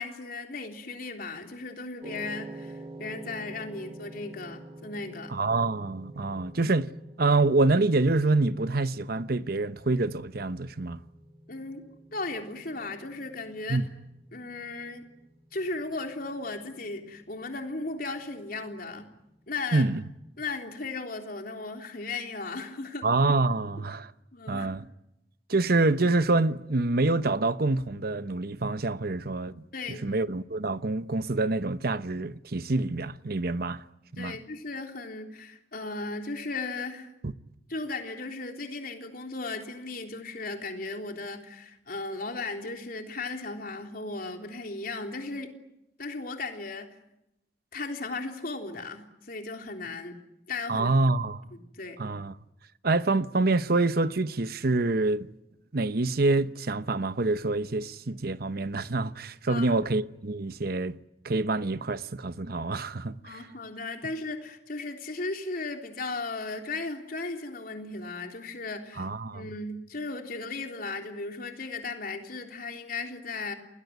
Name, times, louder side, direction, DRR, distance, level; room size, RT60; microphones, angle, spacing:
voice 1, 0.0-5.3 6.1-6.2 11.5-13.8 14.3-15.1 15.5-19.1 19.5-19.9 20.4-23.1 23.8-23.9 24.3-24.7 29.7-30.1 34.2-37.1 37.7-45.5 46.0-47.0 47.7-50.2 50.5-50.9 51.5-52.0 59.5-59.7 63.2-73.5, left 3 dB, 55° left, 3.5 m, -36 dB
sound 1, 2.0-20.3, right 2 dB, 35° right, 1.9 m, -49 dB
voice 2, 5.3-6.9 7.2-11.0 13.7-13.8 19.7-20.0 23.0-24.1 24.5-24.8 25.5-33.8 34.1-34.4 37.2-37.3 50.7-51.4 52.0-52.3 52.8-55.3 55.7-61.0 61.2-63.4 69.0-69.5, right 2 dB, 60° right, 0.9 m, -26 dB
29.5 x 20.5 x 9.4 m
head